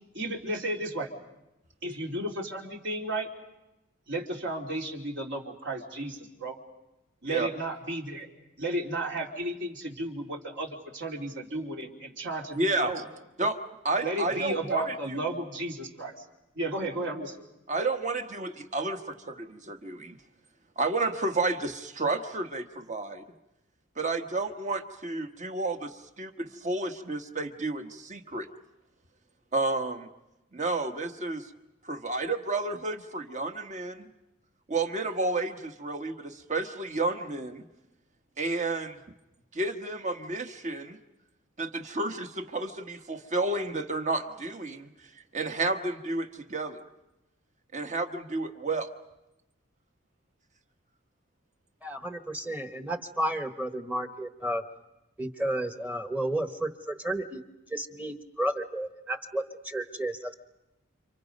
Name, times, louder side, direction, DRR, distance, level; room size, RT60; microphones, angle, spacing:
voice 1, 0.1-1.1 1.8-3.3 4.1-6.6 7.2-8.3 8.6-13.0 14.0-16.2 16.5-17.4, right 1 dB, 60° right, 1 dB, 3.2 m, -33 dB
voice 2, 12.5-12.9 13.4-13.6 13.8-14.9 17.7-20.2 20.8-23.3 24.0-28.5 29.5-30.1 30.5-31.5 31.8-34.1 34.7-37.6 38.4-39.0 39.5-41.0 41.6-44.9 45.1-46.8 47.7-48.9, right 2 dB, 35° right, 6 dB, 1.4 m, -31 dB
voice 3, 51.8-54.6 55.2-57.4 57.7-60.3, right 1 dB, 10° right, 8 dB, 1.2 m, -32 dB
30.0 x 27.0 x 5.4 m, 0.96 s
head